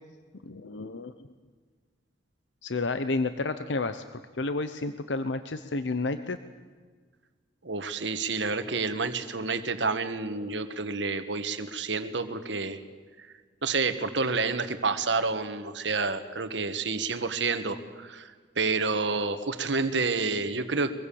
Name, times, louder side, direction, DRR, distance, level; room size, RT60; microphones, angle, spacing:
voice 1, 0.4-1.1 2.6-6.4, left 3 dB, 85° left, 10 dB, 0.8 m, -31 dB
voice 2, 7.6-12.8 13.6-18.3 18.6-20.9, right 4 dB, 85° right, 9 dB, 1.6 m, -29 dB
23.0 x 23.0 x 7.1 m, 1.5 s
head